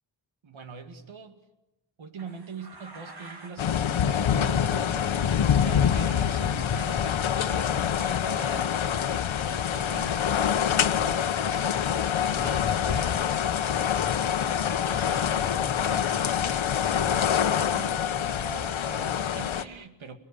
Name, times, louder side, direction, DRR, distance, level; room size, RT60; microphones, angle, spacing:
voice 1, 0.4-1.4 2.0-5.2 5.6-8.9 9.4-10.2 10.6-13.3 14.1-14.5 14.8-20.2, right 4 dB, 85° right, 7 dB, 2.4 m, -43 dB
sound 1, 2.2-3.7 4.0-4.2 4.6-6.1 6.4-6.8 8.6-8.8, right 3 dB, 55° right, 3.2 m, -49 dB
sound 2, 3.6-19.6, left 8 dB, 85° left, 1.1 m, -25 dB
30.0 x 19.5 x 8.5 m, 0.99 s
wide cardioid pair, 105°, 46 cm